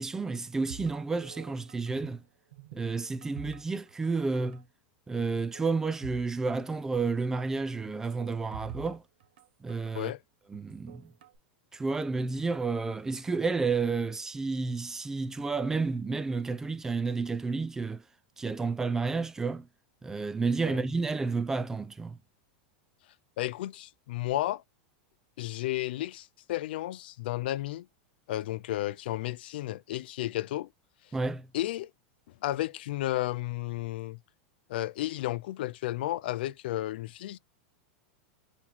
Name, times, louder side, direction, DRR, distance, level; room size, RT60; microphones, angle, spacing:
voice 1, 0.0-2.2 2.7-4.6 5.1-9.0 9.6-10.1 10.5-11.0 11.7-18.0 18.4-19.7 20.0-22.2 31.1-31.5, right 4 dB, 10° right, 0.3 m, -31 dB
sound 1, 0.7-2.2 2.5-4.1 4.4-4.6 5.2-6.3 6.6-6.7 7.9-9.9 10.5-11.4, right 7 dB, 85° right, 0.9 m, -47 dB
voice 2, 23.4-24.6 25.4-27.9 28.3-30.7 31.5-31.9 32.4-34.2 34.7-37.4, left 15 dB, 70° left, 0.4 m, -33 dB
4.1 x 3.0 x 4.1 m
supercardioid pair, 155°, 6 cm